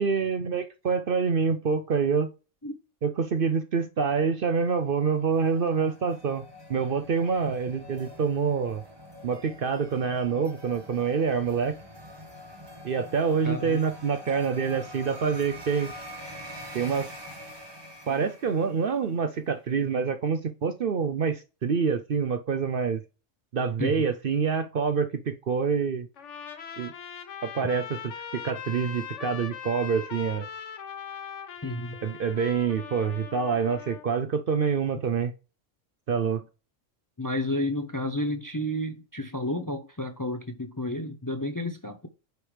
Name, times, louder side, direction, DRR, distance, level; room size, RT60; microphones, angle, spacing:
voice 1, 0.0-2.3 3.0-6.4 6.7-8.8 9.2-11.7 12.8-15.9 16.7-17.1 18.1-23.0 23.5-26.1 26.8-26.9 27.4-30.5 32.0-35.3 36.1-36.4, right 6 dB, 55° right, 0.7 m, -26 dB
sound 1, 4.4-19.1, equal, 20° right, 1.4 m, -45 dB
voice 2, 13.4-13.8 23.8-24.1 31.6-32.0 37.2-42.1, left 1 dB, 20° left, 0.6 m, -31 dB
Trumpet, 26.2-34.1, left 7 dB, 65° left, 1.3 m, -40 dB
9.3 x 4.7 x 3.4 m
omnidirectional pair, 1.3 m